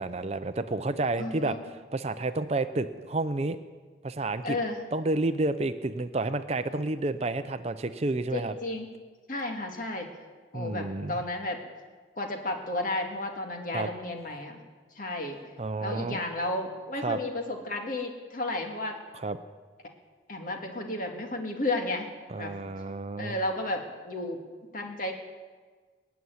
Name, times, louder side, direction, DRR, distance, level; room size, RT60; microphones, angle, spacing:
voice 1, 0.0-1.6 1.9-3.6 4.0-4.6 4.9-8.5 10.5-11.2 13.7-13.9 15.6-16.2 17.0-17.2 19.1-19.4 22.3-23.4, right 2 dB, 35° right, 10 dB, 0.5 m, -30 dB
voice 2, 1.2-1.7 4.4-4.8 8.3-8.9 9.3-10.1 10.5-11.6 12.2-14.6 15.0-15.4 15.8-19.0 20.3-22.1 22.4-22.6 23.2-24.5 24.7-25.1, left 2 dB, 45° left, 3 dB, 2.0 m, -32 dB
20.5 x 7.1 x 9.5 m, 1.5 s
head